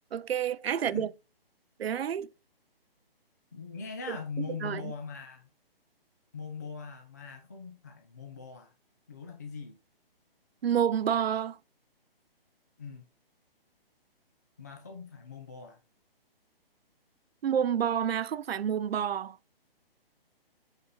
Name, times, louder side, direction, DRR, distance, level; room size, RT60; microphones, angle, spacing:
voice 1, 0.1-1.1 1.8-2.3 4.1-4.8 10.6-11.6 17.4-19.4, right 9 dB, 80° right, 0.5 m, -29 dB
voice 2, 0.8-1.1 3.5-5.5 6.3-8.7 9.1-9.8 12.8-13.0 14.6-15.8, left 5 dB, 20° left, 0.4 m, -41 dB
8.1 x 4.1 x 3.8 m
hypercardioid pair, 160°, 30 cm